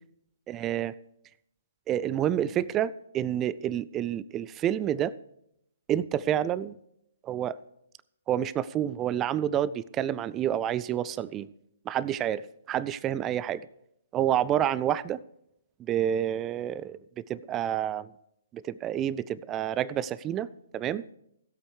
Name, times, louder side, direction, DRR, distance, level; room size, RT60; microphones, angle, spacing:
voice 1, 0.5-0.9 1.9-5.1 5.9-6.7 7.2-7.6 8.3-11.5 11.9-13.6 14.1-15.2 15.8-18.1 18.5-20.5 20.7-21.0, right 10 dB, 20° right, 19 dB, 0.4 m, -29 dB
16.5 x 8.3 x 4.8 m, 0.77 s
figure-of-eight pair, 125°, 0 cm